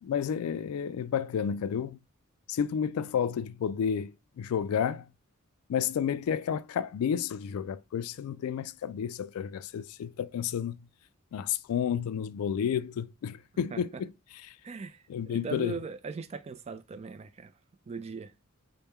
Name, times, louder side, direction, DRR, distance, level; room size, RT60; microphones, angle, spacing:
voice 1, 0.0-2.0 2.5-5.1 5.7-10.8 11.3-14.1 15.1-15.8, left 8 dB, 75° left, 0.3 m, -31 dB
voice 2, 14.6-17.5 17.9-18.3, right 5 dB, 30° right, 0.3 m, -39 dB
4.3 x 2.1 x 3.4 m
head